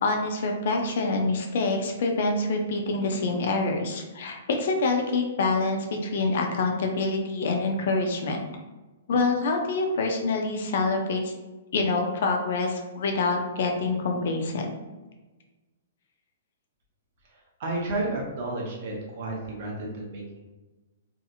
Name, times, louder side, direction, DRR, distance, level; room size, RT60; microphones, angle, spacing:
voice 1, 0.0-8.4 9.1-11.3 11.7-14.7, left 3 dB, 50° left, 3 dB, 0.4 m, -26 dB
voice 2, 17.6-20.4, right 2 dB, 35° right, -2 dB, 0.7 m, -31 dB
2.7 x 2.4 x 2.6 m, 1.2 s
hypercardioid pair, 175°, 0 cm